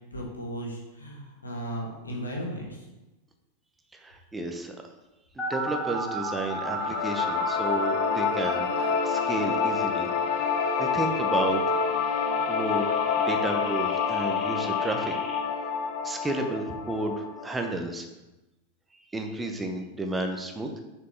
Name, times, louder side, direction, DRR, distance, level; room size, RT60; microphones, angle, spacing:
voice 1, 0.1-2.9, equal, 80° left, -1 dB, 1.4 m, -36 dB
voice 2, 3.9-4.8 5.4-11.6 12.5-15.1 16.0-18.1 18.9-20.8, right 2 dB, 10° right, 4 dB, 0.7 m, -32 dB
sound 1, 5.4-15.4, right 2 dB, 10° left, 1.3 m, -37 dB
sound 2, 6.6-17.7, left 6 dB, 50° left, 0.7 m, -27 dB
6.4 x 4.5 x 3.3 m, 1.0 s
figure-of-eight pair, 90°, 0 cm